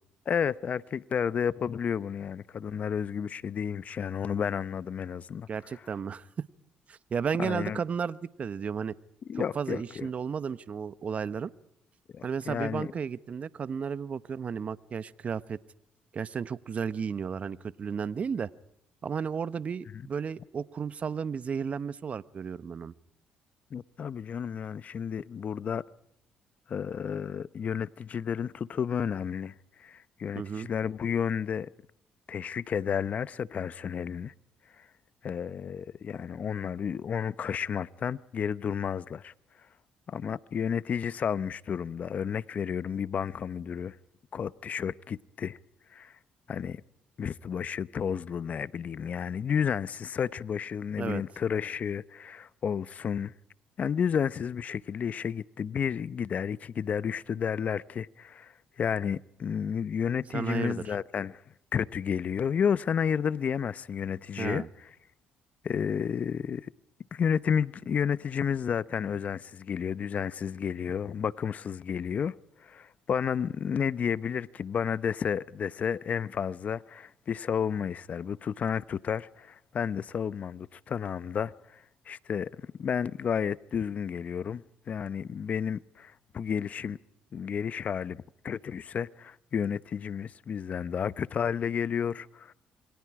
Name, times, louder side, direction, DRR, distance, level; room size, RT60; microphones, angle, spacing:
voice 1, 0.3-5.5 7.4-7.8 9.3-10.1 12.1-12.9 23.7-25.8 26.7-29.5 29.8-31.7 32.3-34.3 34.8-34.9 35.2-39.3 40.1-44.0 44.3-45.6 45.9-46.1 46.5-46.8 47.2-53.3 53.8-61.4 61.7-64.6 65.6-66.7 67.1-82.5 82.8-87.0 87.3-92.5, left 7 dB, 50° left, 0.9 m, -31 dB
voice 2, 5.5-6.4 6.9-8.9 9.3-11.5 12.2-15.6 16.1-18.5 19.0-22.9 30.3-30.7 51.0-51.2 60.3-60.9 64.4-64.7, right 6 dB, 45° right, 1.0 m, -33 dB
28.0 x 23.5 x 4.9 m
cardioid pair, 80°, 3 cm